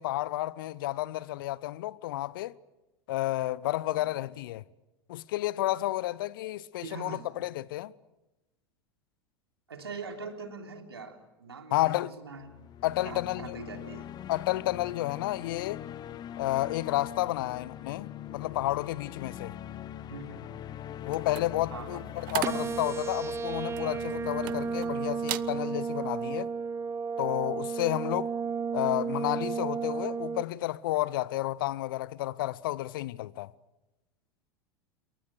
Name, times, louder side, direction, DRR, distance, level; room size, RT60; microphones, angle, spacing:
voice 1, 0.0-2.5 3.1-4.6 5.1-7.9 11.7-12.1 12.8-13.6 14.3-15.8 16.4-19.5 21.1-22.0 22.3-26.5 27.2-28.3 28.7-33.5, left 16 dB, 55° left, 0.9 m, -31 dB
voice 2, 6.8-7.3 9.7-12.5 13.0-14.1 17.4-17.5 20.1-20.5 21.7-22.1, right 4 dB, 75° right, 3.5 m, -42 dB
sound 1, 12.4-26.6, left 11 dB, 30° left, 1.2 m, -43 dB
sound 2, 21.1-24.9 25.2-25.5 26.0-26.3, right 19 dB, 55° right, 0.8 m, -38 dB
sound 3, 22.4-30.4, right 6 dB, 20° right, 0.9 m, -33 dB
28.0 x 23.5 x 6.5 m
figure-of-eight pair, 80°, 13 cm